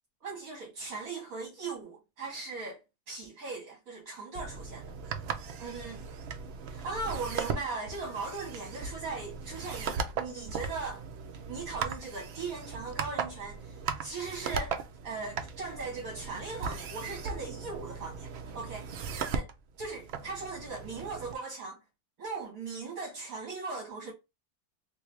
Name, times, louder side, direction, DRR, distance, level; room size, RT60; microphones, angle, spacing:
voice 1, 0.2-2.8 3.1-4.8 5.6-6.0 6.7-11.0 11.5-14.8 15.0-18.9 19.3-19.5 19.8-21.8 22.2-24.1, right 4 dB, 65° right, 1.6 m, -39 dB
sound 1, 4.3-21.3, right 5 dB, 80° right, 0.5 m, -38 dB
3.4 x 2.6 x 3.1 m
omnidirectional pair, 1.7 m